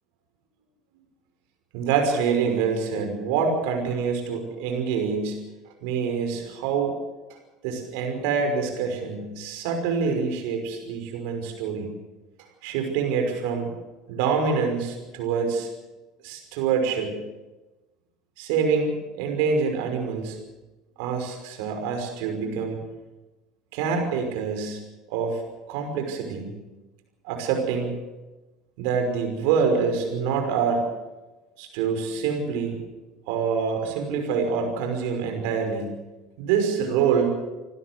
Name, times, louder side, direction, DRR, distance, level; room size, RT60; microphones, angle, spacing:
voice 1, 1.7-5.4 5.8-7.0 7.6-11.9 12.6-13.7 14.1-15.7 16.2-17.2 18.4-20.4 21.0-22.8 23.7-24.8 25.1-25.4 25.7-26.5 27.2-28.0 28.8-30.8 31.6-32.7 33.3-35.9 36.4-37.3, right 6 dB, 75° right, 4 dB, 5.7 m, -26 dB
29.0 x 12.5 x 8.0 m, 1.1 s
supercardioid pair, 85°, 0 cm